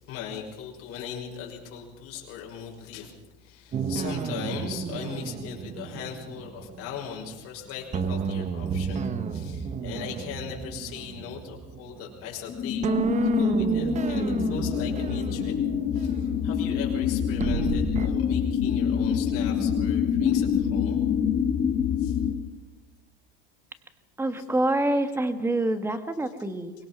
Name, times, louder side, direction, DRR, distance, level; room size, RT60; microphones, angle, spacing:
voice 1, 0.1-3.1 3.4-15.5 15.9-21.1 22.0-22.2 24.4-24.5 24.7-25.0, left 7 dB, 45° left, -1 dB, 6.0 m, -39 dB
sound 1, 3.7-7.5 7.9-12.4 12.8-18.1, right 6 dB, 25° right, 1.1 m, -31 dB
sound 2, 12.5-22.4, left 8 dB, 30° left, 1.8 m, -26 dB
voice 2, 24.2-26.7, right 1 dB, 10° right, 9 dB, 1.5 m, -26 dB
24.0 x 20.5 x 6.1 m, 1.1 s
supercardioid pair, 140°, 30 cm